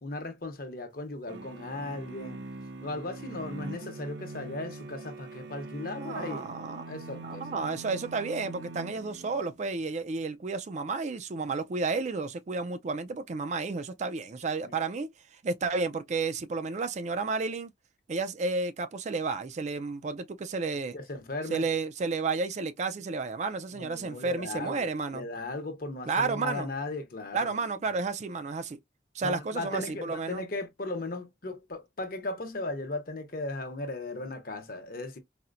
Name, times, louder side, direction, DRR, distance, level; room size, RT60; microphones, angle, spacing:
voice 1, 0.0-2.5 2.8-7.6 20.9-21.6 23.7-27.5 29.2-35.2, left 2 dB, 50° left, 0.8 m, -37 dB
sound 1, 1.3-9.6, right 2 dB, 70° right, 0.7 m, -43 dB
voice 2, 6.0-6.9 7.2-17.7 18.1-21.0 21.5-25.3 26.1-26.7 27.3-28.8 29.1-30.4, right 4 dB, 40° right, 0.4 m, -32 dB
4.2 x 2.0 x 2.5 m
head